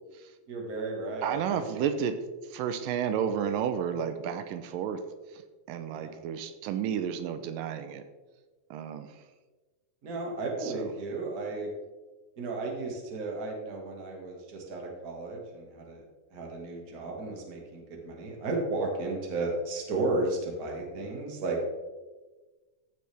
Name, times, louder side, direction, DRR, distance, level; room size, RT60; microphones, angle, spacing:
voice 1, 0.5-1.8 6.0-6.2 10.0-11.7 12.4-16.0 16.3-21.6, right 2 dB, 35° right, 0 dB, 1.6 m, -34 dB
voice 2, 1.2-2.2 2.5-5.4 5.7-8.0 8.7-9.1 10.6-10.9, right 8 dB, 85° right, 10 dB, 2.3 m, -32 dB
15.0 x 6.4 x 3.4 m, 1.2 s
omnidirectional pair, 3.9 m